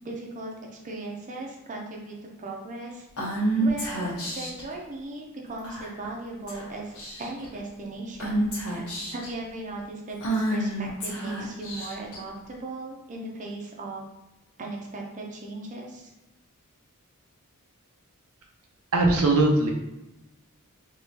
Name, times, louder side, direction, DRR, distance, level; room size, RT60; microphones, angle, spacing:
voice 1, 0.0-3.1 3.6-14.0 14.6-16.1, right 2 dB, 35° right, -1 dB, 0.6 m, -38 dB
Female speech woman speaking / Whispering, 3.2-4.6 5.6-6.1 6.5-6.6 6.9-7.5 8.2-9.3 10.2-12.2, right 1 dB, 75° left, 1.2 m, -29 dB
voice 2, 18.9-19.7, right 2 dB, 80° right, 1 dB, 0.6 m, -20 dB
3.7 x 3.0 x 2.7 m, 0.95 s
head